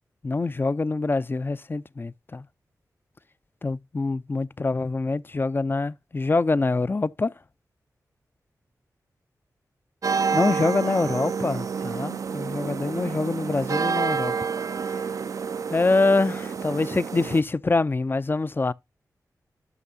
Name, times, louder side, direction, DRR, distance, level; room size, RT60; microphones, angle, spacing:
voice 1, 0.2-2.4 3.6-7.3 10.3-14.3 15.7-18.7, left 3 dB, 30° left, 0.4 m, -25 dB
sound 1, 10.0-17.4, right 6 dB, 55° right, 0.3 m, -28 dB
11.0 x 5.9 x 2.7 m
cardioid pair, 55°, 7 cm